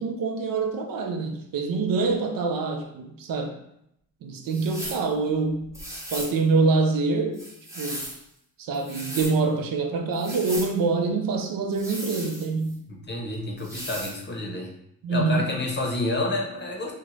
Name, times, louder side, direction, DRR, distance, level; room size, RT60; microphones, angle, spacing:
voice 1, 0.0-3.5 4.2-5.8 6.1-7.4 7.8-8.0 8.6-12.8 15.0-15.5, right 4 dB, 75° right, 4 dB, 0.5 m, -25 dB
sound 1, 4.5-5.1 5.7-6.4 7.3-8.2 8.7-9.4 10.1-10.7 11.7-12.7 13.6-14.2, right 1 dB, 10° right, 0.8 m, -37 dB
voice 2, 13.1-14.7 15.1-16.9, left 2 dB, 30° left, 0 dB, 0.7 m, -29 dB
2.4 x 2.1 x 3.1 m, 0.77 s
cardioid pair, 70°, 35 cm